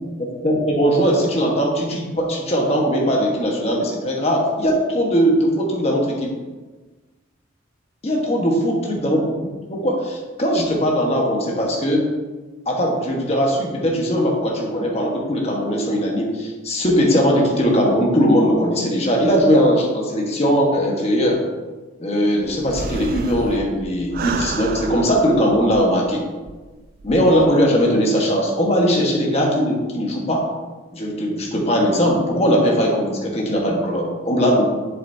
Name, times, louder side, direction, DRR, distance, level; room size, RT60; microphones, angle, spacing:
voice 1, 0.2-6.3 8.0-9.2 9.7-12.1 12.7-21.4 22.0-26.2 27.0-30.5 30.9-34.7, equal, 30° left, -1 dB, 1.3 m, -19 dB
sound 1, 22.5-26.1 26.5-26.6 27.0-27.5, right 4 dB, 45° right, 0.4 m, -31 dB
7.4 x 7.1 x 2.7 m, 1.3 s
head